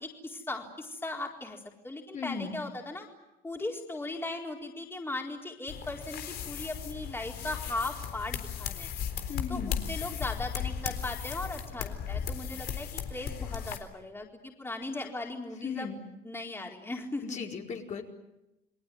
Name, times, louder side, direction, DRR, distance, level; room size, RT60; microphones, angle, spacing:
voice 1, 0.0-3.1 3.4-8.9 9.5-15.9 16.2-17.5, left 2 dB, 15° left, 1 dB, 4.2 m, -38 dB
voice 2, 2.1-2.5 9.3-9.8 15.6-16.0 17.2-18.0, left 6 dB, 45° left, 1 dB, 4.7 m, -36 dB
sound 1, 5.7-13.8, left 8 dB, 70° left, 3.8 m, -36 dB
30.0 x 21.0 x 9.4 m, 0.92 s
cardioid pair, 110°, 17 cm